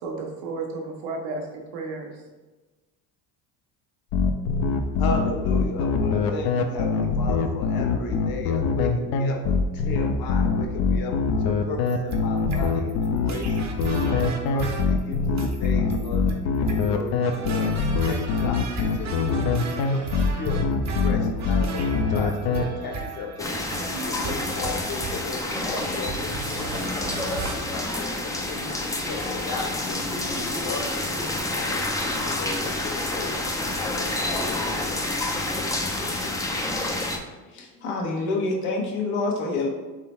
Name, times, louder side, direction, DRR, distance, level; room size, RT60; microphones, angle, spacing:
voice 1, 0.0-2.1, right 3 dB, 75° right, 1 dB, 1.1 m, -33 dB
sound 1, 4.1-22.6, left 4 dB, 70° left, 0.6 m, -23 dB
voice 2, 4.5-13.6 14.1-28.8 29.0-31.1 31.5-35.0, left 3 dB, 50° left, 2 dB, 1.0 m, -36 dB
sound 2, 11.9-27.5, right 3 dB, 35° right, 0.7 m, -35 dB
sound 3, 23.4-37.2, left 2 dB, 10° left, 0.4 m, -28 dB
voice 3, 37.5-39.7, left 3 dB, 85° left, -1 dB, 1.2 m, -27 dB
3.8 x 3.3 x 4.2 m, 1.2 s
supercardioid pair, 95°, 46 cm